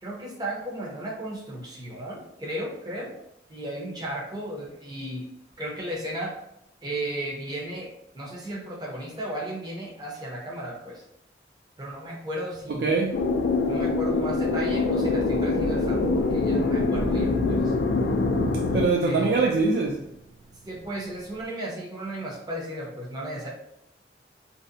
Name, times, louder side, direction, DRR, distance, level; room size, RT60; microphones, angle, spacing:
voice 1, 0.0-3.1 3.5-5.3 5.6-6.4 6.8-11.0 11.8-12.9 13.7-17.7 19.0-19.4 20.6-23.5, right 1 dB, 25° right, 0.6 m, -34 dB
voice 2, 12.8-13.2 18.7-20.0, right 3 dB, 65° right, 0.3 m, -23 dB
sound 1, 13.1-18.9, left 3 dB, 90° left, 0.3 m, -24 dB
2.6 x 2.0 x 2.5 m
head